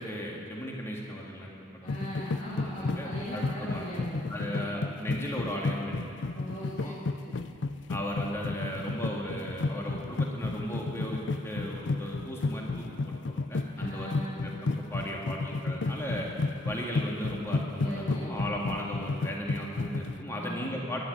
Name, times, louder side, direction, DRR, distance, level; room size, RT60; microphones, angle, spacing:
voice 1, 0.0-2.0 2.6-3.8 4.3-6.2 6.8-6.9 7.9-14.1 14.4-16.3 16.6-21.0, equal, 15° left, -2 dB, 2.0 m, -36 dB
voice 2, 1.8-4.6 6.3-7.5 13.8-14.5 17.8-18.4 20.3-20.6, equal, 35° left, -9 dB, 2.5 m, -39 dB
sound 1, 1.9-20.2, left 3 dB, 60° left, 0.5 m, -32 dB
13.0 x 11.0 x 9.6 m, 2.7 s
head